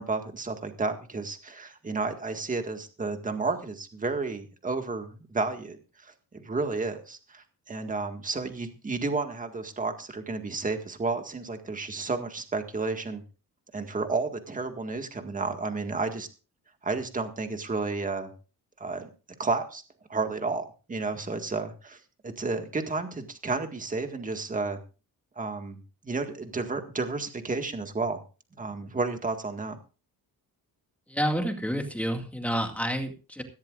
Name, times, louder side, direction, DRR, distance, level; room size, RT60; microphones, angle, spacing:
voice 1, 0.0-13.2 13.7-16.3 16.8-18.3 18.8-19.1 19.4-19.8 20.1-22.0 22.2-24.8 25.4-28.2 28.6-29.8, right 3 dB, 20° right, 6 dB, 1.8 m, -32 dB
voice 2, 31.1-33.4, equal, 5° left, 4 dB, 2.1 m, -29 dB
17.0 x 15.5 x 2.5 m, 0.34 s
wide cardioid pair, 180°, 37 cm